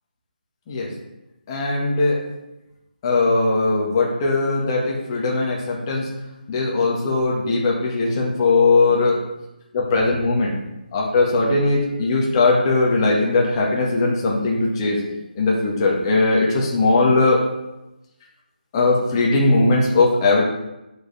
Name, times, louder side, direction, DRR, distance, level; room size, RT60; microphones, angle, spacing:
voice 1, 1.5-2.2 3.0-6.1 6.5-9.2 9.7-10.6 10.9-15.0 15.4-17.4 18.7-20.4, left 3 dB, 25° left, -3 dB, 1.7 m, -19 dB
7.8 x 6.5 x 3.5 m, 0.94 s
figure-of-eight pair, 160°, 5 cm